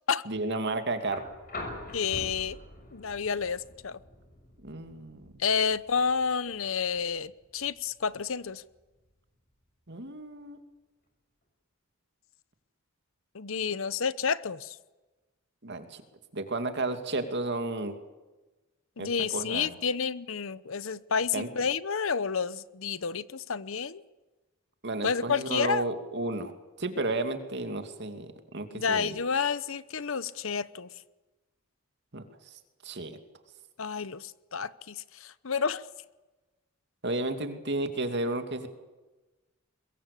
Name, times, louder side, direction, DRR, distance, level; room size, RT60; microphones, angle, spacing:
voice 1, 0.2-1.2 4.6-5.3 9.9-10.6 15.6-16.0 16.3-18.0 19.0-19.8 21.3-21.5 24.8-26.5 26.8-29.2 32.1-33.2 37.0-38.7, right 2 dB, 55° right, 7 dB, 2.6 m, -33 dB
sound 1, 1.0-9.1 10.5-10.6, left 2 dB, 45° left, 6.7 m, -46 dB
voice 2, 1.9-2.6 2.9-4.0 5.4-8.6 13.3-14.8 19.0-24.0 25.0-25.8 28.7-30.9 33.8-35.8, left 6 dB, 70° left, 17 dB, 0.9 m, -30 dB
23.0 x 22.0 x 8.5 m, 1.2 s
head